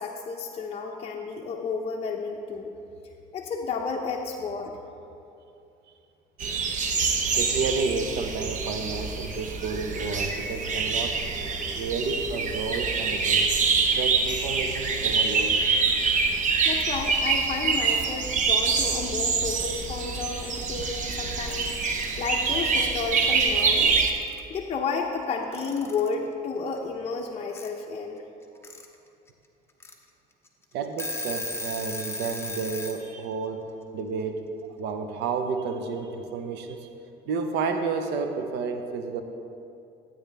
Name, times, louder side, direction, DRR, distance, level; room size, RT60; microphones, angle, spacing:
voice 1, 0.0-2.7 3.3-4.8 16.6-21.7 22.2-24.0 24.5-28.2, left 4 dB, 35° left, -1 dB, 0.7 m, -32 dB
sound 1, 6.4-24.1, right 4 dB, 50° right, 0.9 m, -25 dB
voice 2, 7.3-11.2 11.7-13.5 13.9-15.6 30.7-33.7 33.9-34.4 34.8-36.9 37.2-39.2, right 4 dB, 85° right, 6 dB, 0.9 m, -31 dB
Alarm / Clock, 21.3-22.1 23.3-23.4 23.6-24.4 25.5-26.1 27.6-27.7 28.4-28.9 29.3-29.4 29.8-29.9 30.5-30.6 30.8-33.0, left 1 dB, 15° left, 0.9 m, -36 dB
12.5 x 8.8 x 3.4 m, 2.7 s
cardioid pair, 110°, 17 cm